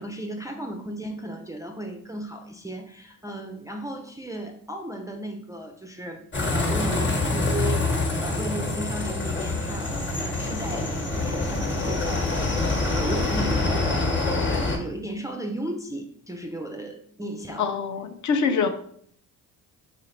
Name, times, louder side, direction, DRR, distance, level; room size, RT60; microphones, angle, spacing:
voice 1, 0.0-6.2 6.5-17.7 18.4-18.7, right 1 dB, 10° right, 2 dB, 0.4 m, -35 dB
sound 1, 6.3-14.8, left 2 dB, 30° left, 1.1 m, -25 dB
voice 2, 17.6-18.7, left 5 dB, 45° left, 8 dB, 0.6 m, -24 dB
4.0 x 2.4 x 3.1 m, 0.62 s
hypercardioid pair, 60°, 41 cm